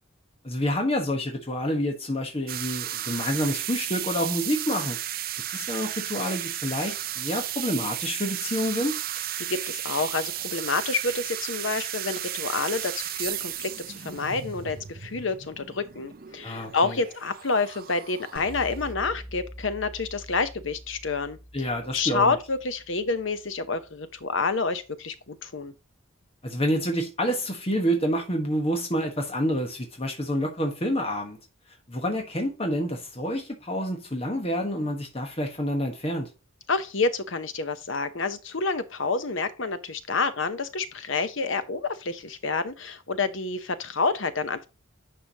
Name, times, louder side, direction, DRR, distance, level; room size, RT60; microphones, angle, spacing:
voice 1, 0.4-5.0 5.5-9.0 16.4-17.0 21.5-22.4 26.4-31.4 31.9-36.3, equal, 30° left, 1.3 m, -28 dB
sound 1, 2.5-18.9, right 12 dB, 45° right, 0.6 m, -34 dB
voice 2, 9.4-25.7 36.7-44.7, left 4 dB, 65° left, 0.9 m, -28 dB
sound 2, 18.4-23.4, equal, 50° left, 2.7 m, -44 dB
10.0 x 5.1 x 2.9 m
head